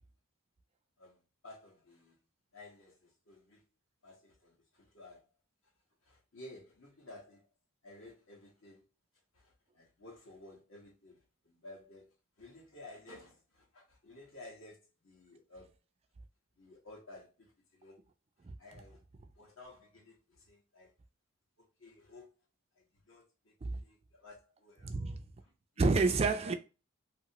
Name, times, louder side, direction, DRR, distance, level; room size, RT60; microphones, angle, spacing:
voice 1, 1.0-2.2 2.5-3.6 4.0-5.3 6.0-7.5 7.8-8.9 9.3-15.7 16.5-18.1 18.6-19.0 19.3-20.9 21.6-22.4 22.7-26.0, left 2 dB, 70° left, 1.4 m, -55 dB
voice 2, 24.8-25.2 25.8-26.5, right 3 dB, 30° right, 0.3 m, -28 dB
3.0 x 2.9 x 2.8 m
head